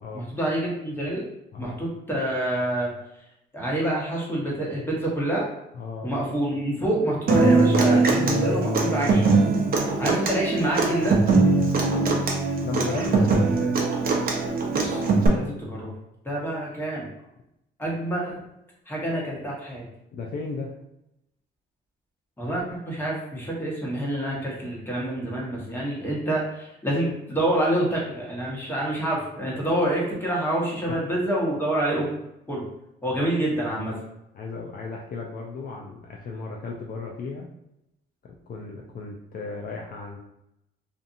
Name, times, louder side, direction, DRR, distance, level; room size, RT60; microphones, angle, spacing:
voice 1, 0.1-1.3 1.6-2.9 3.5-5.5 6.0-9.3 10.0-11.2 12.9-13.1 14.7-15.9 16.2-17.0 17.8-18.3 18.9-19.9 22.4-32.1 32.5-32.6 33.0-34.0, right 1 dB, 10° left, -4 dB, 1.1 m, -27 dB
voice 2, 1.5-1.8 5.7-6.1 10.9-11.7 12.6-13.7 20.1-20.7 30.9-31.0 34.3-37.5 38.5-40.2, left 4 dB, 50° left, -1 dB, 0.4 m, -35 dB
Human voice / Acoustic guitar, 7.3-15.3, right 3 dB, 50° right, 0.6 m, -21 dB
2.7 x 2.5 x 2.5 m, 0.83 s
cardioid pair, 90°, 20 cm